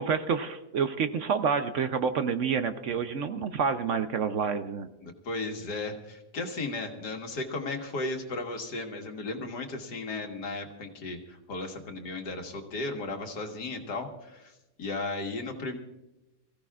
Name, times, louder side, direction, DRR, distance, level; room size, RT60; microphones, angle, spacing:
voice 1, 0.0-4.9, right 6 dB, 60° right, 9 dB, 0.9 m, -28 dB
voice 2, 5.0-14.5 14.8-15.8, left 2 dB, 90° left, 3 dB, 2.1 m, -35 dB
25.0 x 15.0 x 2.4 m, 0.95 s
omnidirectional pair, 1.7 m